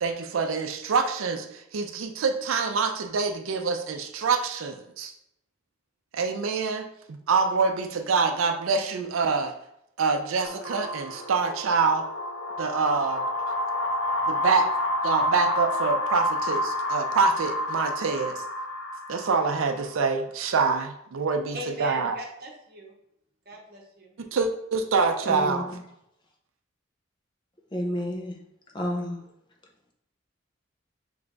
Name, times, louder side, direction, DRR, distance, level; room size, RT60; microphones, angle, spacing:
voice 1, 0.0-5.1 6.1-9.5 10.0-12.1 12.6-13.2 14.3-14.7 15.0-18.4 19.1-22.2 24.2-25.6, right 4 dB, 85° right, 5 dB, 0.4 m, -26 dB
sound 1, 10.4-19.9, left 1 dB, 65° left, 0.6 m, -29 dB
voice 2, 21.5-22.9 23.5-24.1, right 1 dB, 50° right, 0 dB, 0.9 m, -39 dB
voice 3, 25.2-25.8 27.7-28.4 28.7-29.2, equal, 25° left, 1 dB, 0.5 m, -30 dB
3.4 x 3.1 x 3.8 m, 0.77 s
head